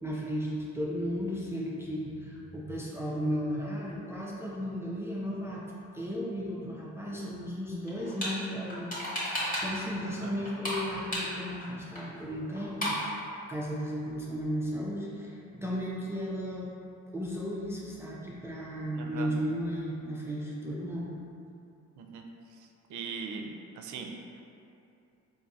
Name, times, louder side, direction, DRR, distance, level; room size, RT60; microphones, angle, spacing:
voice 1, 0.0-5.6 5.9-9.0 9.2-13.2 13.5-16.7 17.1-21.1, equal, 10° right, -6 dB, 0.4 m, -35 dB
sound 1, 7.9-8.3 8.7-9.8 10.1-11.7 12.0-12.1 12.3-12.4 12.6-13.1, equal, 30° left, 1.2 m, -33 dB
voice 2, 18.9-19.3 22.0-22.2 22.9-24.1, right 5 dB, 75° right, 3 dB, 0.5 m, -40 dB
3.9 x 2.6 x 2.6 m, 2.7 s
cardioid pair, 90°, 30 cm